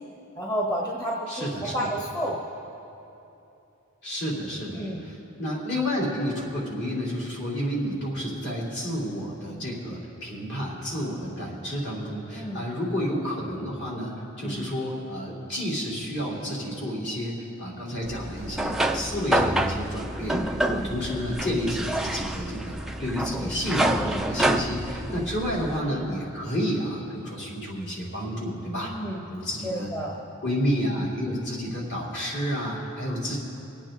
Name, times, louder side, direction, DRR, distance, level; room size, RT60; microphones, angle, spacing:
voice 1, 0.3-2.4 4.7-5.1 12.3-12.7 14.4-14.7 20.6-20.9 25.1-25.2 28.8-29.2 29.6-30.2, equal, 15° left, -3 dB, 1.2 m, -31 dB
voice 2, 1.3-1.9 4.0-17.3 17.6-28.9 29.3-29.9 30.4-33.4, equal, 55° left, -5 dB, 3.4 m, -30 dB
sound 1, 18.1-25.8, right 1 dB, ahead, 0.4 m, -28 dB
26.0 x 8.8 x 3.8 m, 2.9 s
head